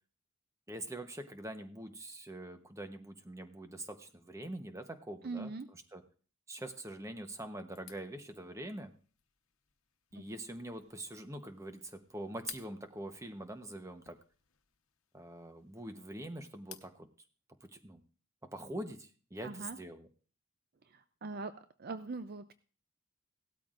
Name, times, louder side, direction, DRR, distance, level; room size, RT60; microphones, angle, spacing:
voice 1, 0.7-6.0 6.5-8.9 10.1-14.2 15.1-17.1 17.6-18.0 18.5-20.1, right 1 dB, 15° right, 7 dB, 0.9 m, -44 dB
voice 2, 5.2-5.7 10.2-10.3 19.4-19.8 20.9-22.5, right 3 dB, 45° right, 11 dB, 0.4 m, -42 dB
sound 1, 7.7-17.0, left 12 dB, 80° left, 1.0 m, -56 dB
17.0 x 13.0 x 2.5 m, 0.40 s
head